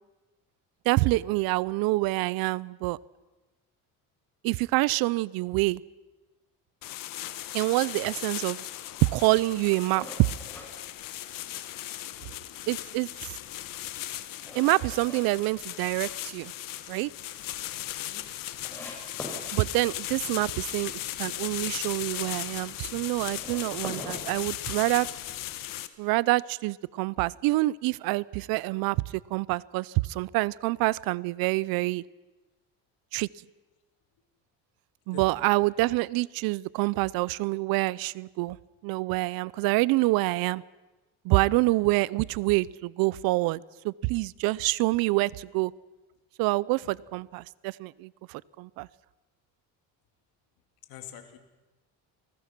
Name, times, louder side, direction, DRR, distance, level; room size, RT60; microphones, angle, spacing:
voice 1, 0.9-3.0 4.4-5.8 7.5-8.6 9.0-10.1 12.7-13.3 14.5-16.5 16.9-17.1 19.5-25.1 26.0-29.0 29.3-32.0 33.1-33.3 35.1-38.6 38.8-40.6 41.2-45.7 46.4-48.9, right 21 dB, 85° right, 23 dB, 0.7 m, -26 dB
sound 1, 6.8-25.9, left 14 dB, 65° left, 1.5 m, -37 dB
sound 2, 9.9-11.7 12.1-12.2 12.7-15.2 15.6-16.4 16.7-16.8 17.2-17.3 17.5-17.6 18.2-18.3 18.6-19.4 23.2-25.0, left 1 dB, 5° left, 6.9 m, -42 dB
voice 2, 35.1-35.4 46.8-46.9 50.9-51.4, left 10 dB, 80° left, 6 dB, 3.0 m, -46 dB
28.5 x 19.5 x 6.1 m, 1.2 s
cardioid pair, 120°, 35 cm